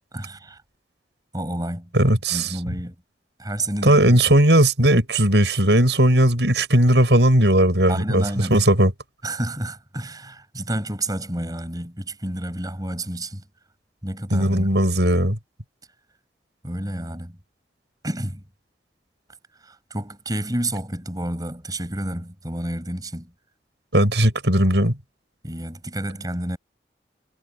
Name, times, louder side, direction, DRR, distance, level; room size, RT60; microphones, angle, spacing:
voice 1, 0.1-0.6 1.3-2.9 3.4-4.2 7.9-8.6 9.2-13.4 14.0-14.7 16.6-17.3 18.0-18.4 19.6-23.3 25.4-26.6, right 1 dB, 20° right, 6.8 m, -30 dB
voice 2, 1.9-2.6 3.8-8.9 14.3-15.4 23.9-25.0, right 1 dB, 80° right, 6.9 m, -17 dB
head